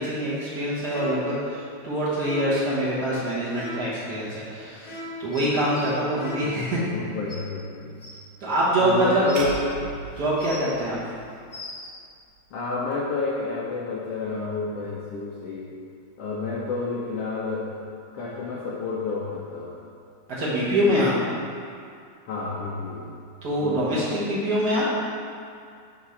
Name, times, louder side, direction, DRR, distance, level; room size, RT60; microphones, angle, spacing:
voice 1, 0.0-6.9 8.4-9.3 10.2-11.0 20.4-21.1 23.4-24.8, right 1 dB, 45° right, -8 dB, 1.4 m, -24 dB
sound 1, 0.9-1.4 2.2-2.7 3.5-4.0 4.8-5.3 6.1-6.7, left 1 dB, 55° left, 1.7 m, -37 dB
sound 2, 5.3-5.9 6.9-7.0 7.3-7.4 8.0-8.1 8.9-9.5 10.1-10.8 11.3-11.9 12.9-13.0, left 2 dB, 35° left, 1.3 m, -41 dB
voice 2, 6.4-7.9 8.8-9.7 12.5-15.7 16.2-17.7 18.1-19.7 22.3-23.1 23.6-23.8, left 4 dB, 75° left, -5 dB, 1.4 m, -30 dB
sound 3, 9.4-11.6, right 3 dB, 85° right, 2.1 m, -37 dB
5.1 x 4.8 x 5.7 m, 2.3 s
omnidirectional pair, 3.3 m